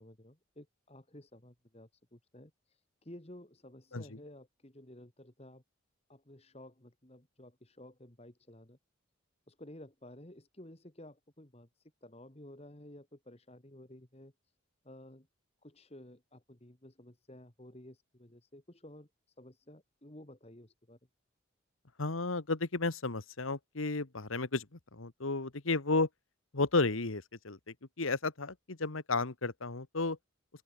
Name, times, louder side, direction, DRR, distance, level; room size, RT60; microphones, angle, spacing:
voice 1, 0.0-5.6 6.1-8.8 9.5-14.3 14.8-15.3 15.6-19.1 19.4-21.0, left 1 dB, 30° left, 2.0 m, -53 dB
voice 2, 22.0-24.6 24.9-26.1 26.5-30.2, left 3 dB, 90° left, 1.6 m, -33 dB
open air
head